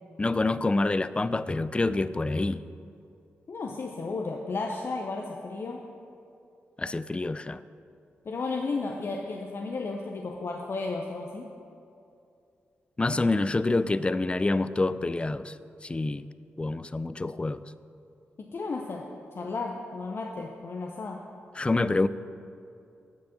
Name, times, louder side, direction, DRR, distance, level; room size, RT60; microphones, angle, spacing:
voice 1, 0.2-2.6 6.8-7.6 13.0-15.6 15.8-16.3 16.6-17.6 21.6-22.1, left 2 dB, 20° left, 15 dB, 0.3 m, -27 dB
voice 2, 3.5-5.8 8.2-11.5 18.4-19.1 19.3-21.2, left 3 dB, 55° left, 1 dB, 0.6 m, -33 dB
7.7 x 4.7 x 6.9 m, 2.6 s
cardioid pair, 50°, 5 cm